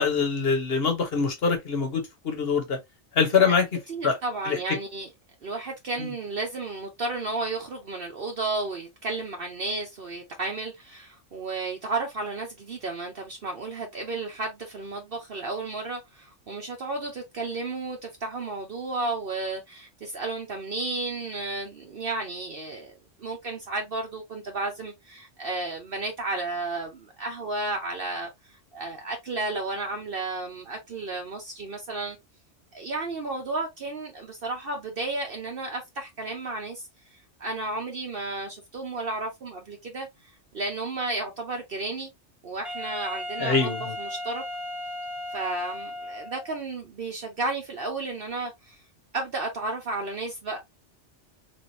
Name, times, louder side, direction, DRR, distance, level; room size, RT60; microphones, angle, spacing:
voice 1, 0.0-2.8 3.1-3.6 4.0-4.2 4.5-4.6 43.4-43.9, left 5 dB, 55° left, 1.2 m, -24 dB
voice 2, 3.9-5.1 5.4-22.9 23.2-32.2 32.7-36.9 37.4-40.1 40.5-42.1 42.4-43.7 44.0-44.4 45.3-48.8 49.1-50.6, right 3 dB, 55° right, 1.0 m, -33 dB
Wind instrument woodwind instrument, 42.6-46.6, left 1 dB, ahead, 0.6 m, -35 dB
3.5 x 3.3 x 2.7 m
omnidirectional pair, 1.2 m